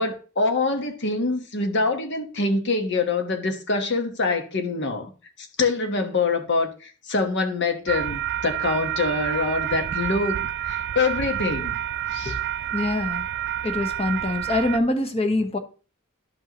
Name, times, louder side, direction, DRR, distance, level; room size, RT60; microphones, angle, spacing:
voice 1, 0.0-5.1 5.4-11.8 12.1-12.4, left 3 dB, 55° left, 1.2 m, -25 dB
sound 1, 7.9-14.8, right 11 dB, 55° right, 0.3 m, -29 dB
voice 2, 12.7-13.3 13.6-15.6, left 2 dB, 30° left, 1.0 m, -24 dB
11.5 x 5.5 x 2.9 m
head